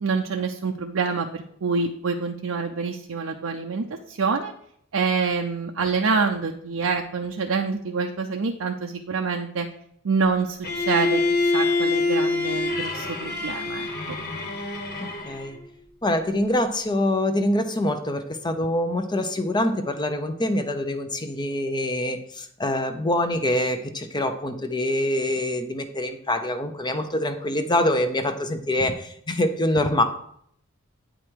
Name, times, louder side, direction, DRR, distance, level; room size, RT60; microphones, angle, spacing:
voice 1, 0.0-4.5 4.9-9.7 10.0-14.2, right 4 dB, 75° right, 2 dB, 0.6 m, -26 dB
Bowed string instrument, 10.6-15.6, left 3 dB, 50° left, 1.5 m, -25 dB
voice 2, 15.0-15.6 16.0-30.0, left 1 dB, 20° left, 8 dB, 0.7 m, -25 dB
8.8 x 5.1 x 4.6 m, 0.69 s
head